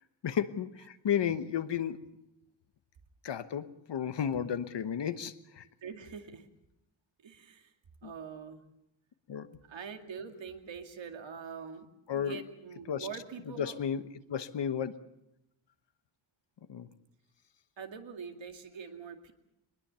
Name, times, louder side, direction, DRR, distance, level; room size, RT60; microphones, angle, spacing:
voice 1, 0.2-2.0 3.2-5.7 8.0-8.1 9.3-9.5 12.1-12.4 12.9-13.1 13.5-14.0 14.3-14.9 16.7-16.9, left 8 dB, 60° left, 11 dB, 1.2 m, -33 dB
voice 2, 5.8-6.5 7.2-7.7 8.0-8.6 9.7-11.9 12.1-13.9 17.8-19.3, right 6 dB, 65° right, 5 dB, 2.3 m, -44 dB
23.0 x 20.5 x 6.9 m, 0.86 s
wide cardioid pair, 170°, 48 cm